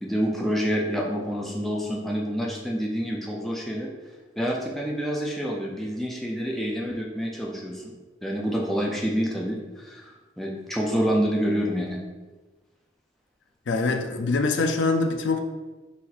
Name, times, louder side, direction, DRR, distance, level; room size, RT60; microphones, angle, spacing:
voice 1, 0.0-3.9 4.4-7.9 8.2-12.0, equal, ahead, -2 dB, 0.4 m, -27 dB
voice 2, 13.7-15.4, left 3 dB, 75° left, 6 dB, 0.4 m, -24 dB
4.2 x 2.5 x 4.2 m, 1.2 s
head